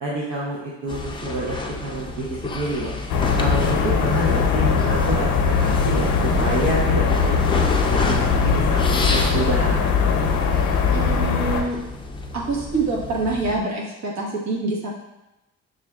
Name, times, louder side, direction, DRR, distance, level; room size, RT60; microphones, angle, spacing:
voice 1, 0.0-3.0 3.4-9.8, right 2 dB, 85° right, -5 dB, 0.8 m, -28 dB
sound 1, 0.9-13.6, left 2 dB, 15° left, 0.4 m, -31 dB
sound 2, 3.1-11.6, left 5 dB, 75° left, 0.6 m, -20 dB
voice 2, 10.9-11.8 12.3-14.9, right 3 dB, 65° right, -3 dB, 1.2 m, -25 dB
6.7 x 2.5 x 2.2 m, 0.97 s
cardioid pair, 90°, 30 cm